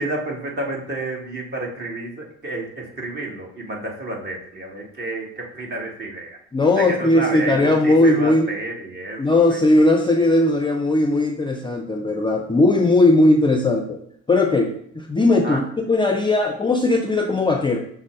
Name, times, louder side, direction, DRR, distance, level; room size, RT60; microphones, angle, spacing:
voice 1, 0.0-6.4 6.7-9.2 9.5-9.6 15.4-15.6, right 2 dB, 35° right, -1 dB, 1.3 m, -30 dB
voice 2, 6.5-8.5 9.2-14.0 14.3-15.6 15.9-17.8, left 2 dB, 15° left, 3 dB, 0.4 m, -18 dB
6.0 x 2.0 x 4.2 m, 0.67 s
supercardioid pair, 80°, 31 cm